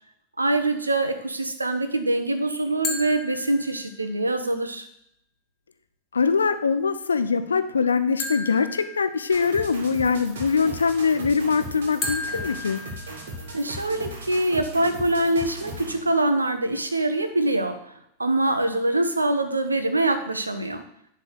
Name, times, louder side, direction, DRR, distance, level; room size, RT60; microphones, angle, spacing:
voice 1, 0.4-4.9 13.5-20.8, right 2 dB, 80° right, 8 dB, 0.9 m, -24 dB
sound 1, 2.8-4.1 8.2-9.7 12.0-13.7, left 3 dB, 25° left, 1.6 m, -34 dB
voice 2, 6.1-12.8, left 5 dB, 75° left, 10 dB, 0.6 m, -23 dB
sound 2, 9.3-16.1, right 1 dB, 60° right, 1.9 m, -37 dB
10.5 x 3.6 x 6.1 m, 0.74 s
figure-of-eight pair, 90°, 0 cm